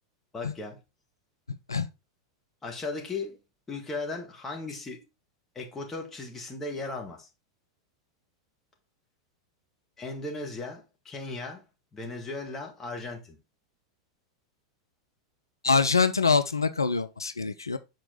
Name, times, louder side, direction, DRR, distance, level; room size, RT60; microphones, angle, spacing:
voice 1, 0.3-0.8 2.6-3.4 3.7-5.0 5.6-7.3 10.0-11.6 11.9-13.4, left 3 dB, 15° left, 2.0 m, -36 dB
voice 2, 15.6-17.8, left 4 dB, 80° left, 0.4 m, -24 dB
6.4 x 4.5 x 3.9 m
figure-of-eight pair, 90°, 2 cm